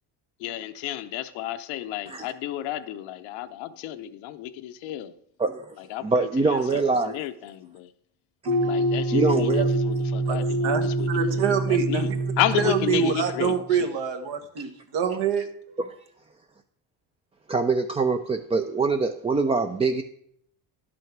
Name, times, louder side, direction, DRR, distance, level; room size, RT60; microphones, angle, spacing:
voice 1, 0.4-5.1 5.9-7.9 8.7-13.9, left 12 dB, 90° left, 7 dB, 0.8 m, -32 dB
voice 2, 5.4-5.8 6.0-7.2 9.1-9.7 14.6-14.7 15.8-15.9 17.5-20.0, right 4 dB, 15° right, 7 dB, 0.3 m, -24 dB
sound 1, 8.5-13.7, right 1 dB, 85° right, 2.7 m, -26 dB
voice 3, 10.6-15.5, right 6 dB, 70° right, 7 dB, 1.5 m, -26 dB
10.5 x 6.2 x 5.9 m, 0.68 s
cardioid pair, 115°, 45 cm